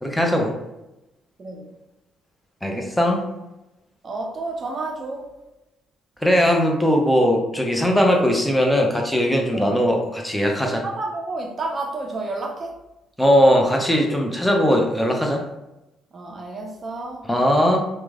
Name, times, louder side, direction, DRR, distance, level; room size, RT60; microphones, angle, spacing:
voice 1, 0.0-0.5 2.6-3.2 6.2-10.8 13.2-15.5 17.3-17.9, equal, 5° left, 1 dB, 0.6 m, -19 dB
voice 2, 4.0-5.3 9.5-9.8 10.6-12.8 16.1-17.2, right 2 dB, 40° right, 2 dB, 0.4 m, -30 dB
3.0 x 2.1 x 2.4 m, 0.96 s
hypercardioid pair, 45°, 0 cm